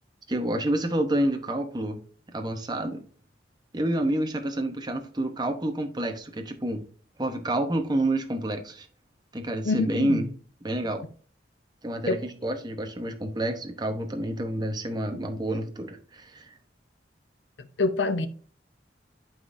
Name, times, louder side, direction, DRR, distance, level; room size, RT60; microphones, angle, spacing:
voice 1, 0.3-2.0 2.3-3.0 3.7-6.8 7.2-8.9 9.3-10.3 10.6-11.1 11.8-16.5, right 1 dB, 25° right, 0.9 m, -28 dB
voice 2, 9.6-10.2 12.1-12.2 17.8-18.3, left 3 dB, 90° left, 0.8 m, -25 dB
11.5 x 4.0 x 2.6 m
head